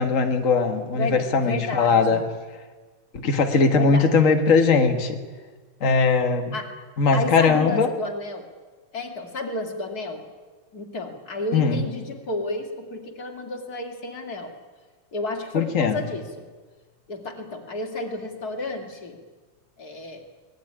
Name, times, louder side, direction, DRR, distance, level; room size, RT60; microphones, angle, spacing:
voice 1, 0.0-2.2 3.2-5.2 5.8-6.5 7.0-7.9 11.5-11.8 15.5-16.0, left 4 dB, 75° left, 5 dB, 0.7 m, -20 dB
voice 2, 0.9-2.2 3.7-4.3 6.5-6.7 7.1-8.4 8.9-10.2 10.7-14.5 15.1-16.5 17.1-19.2 19.8-20.2, left 2 dB, 30° left, 3 dB, 2.6 m, -31 dB
25.0 x 19.0 x 9.8 m, 1.4 s
omnidirectional pair, 3.9 m